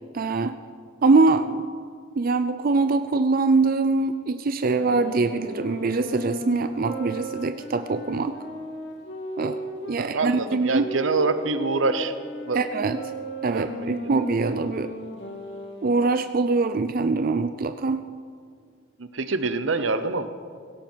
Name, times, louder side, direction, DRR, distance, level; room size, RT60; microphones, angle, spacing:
voice 1, 0.1-0.6 1.0-1.6 2.2-8.4 9.4-9.6 9.9-10.9 12.5-13.0 13.4-14.9 15.8-18.0, right 3 dB, 50° right, 10 dB, 0.4 m, -23 dB
sound 1, 4.6-10.0 10.7-16.0, equal, 65° left, 2.3 m, -36 dB
voice 2, 10.0-12.1 12.4-12.6 13.5-13.9 19.0-20.3, right 3 dB, 85° right, 11 dB, 0.9 m, -25 dB
17.5 x 16.5 x 4.6 m, 2.1 s
head